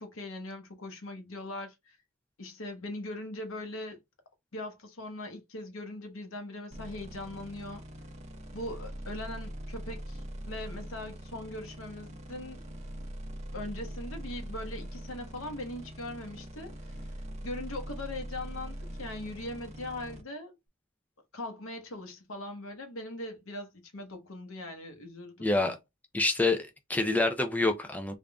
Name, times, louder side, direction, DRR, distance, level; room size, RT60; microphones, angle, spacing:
voice 1, 0.0-2.0 2.4-4.0 4.5-7.8 8.5-12.6 13.5-17.0 17.4-20.6 21.3-25.5, left 1 dB, 75° left, 1.0 m, -40 dB
sound 1, 6.7-20.2, equal, 35° right, 0.8 m, -42 dB
voice 2, 25.4-25.8 26.1-28.2, left 2 dB, 10° left, 0.5 m, -27 dB
3.5 x 2.5 x 3.4 m
head